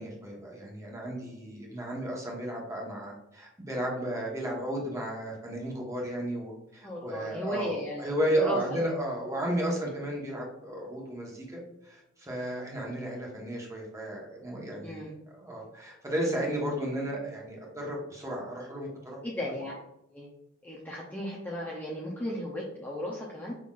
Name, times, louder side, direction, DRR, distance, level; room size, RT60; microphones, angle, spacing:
voice 1, 0.0-15.0 15.4-19.2, right 1 dB, 15° right, -2 dB, 1.2 m, -33 dB
voice 2, 6.8-8.9 14.8-15.1 19.2-19.7 20.1-20.3 20.6-23.5, left 1 dB, 10° left, -4 dB, 0.6 m, -35 dB
5.8 x 3.8 x 2.4 m, 0.86 s
head